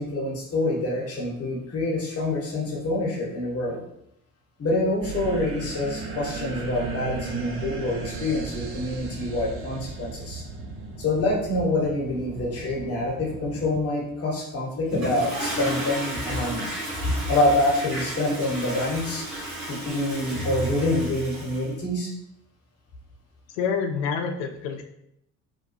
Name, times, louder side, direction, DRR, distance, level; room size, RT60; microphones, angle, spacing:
voice 1, 0.0-3.8 4.6-10.4 11.0-16.7 17.0-19.3 19.7-22.1, left 2 dB, 35° left, -2 dB, 0.9 m, -26 dB
sound 1, 5.0-13.8, right 4 dB, 30° right, 0.4 m, -36 dB
Toilet flush, 14.9-21.7, right 1 dB, 70° right, 1.2 m, -32 dB
voice 2, 23.5-24.8, left 6 dB, 60° left, 6 dB, 0.5 m, -27 dB
2.5 x 2.2 x 2.7 m, 0.77 s
figure-of-eight pair, 55°, 43 cm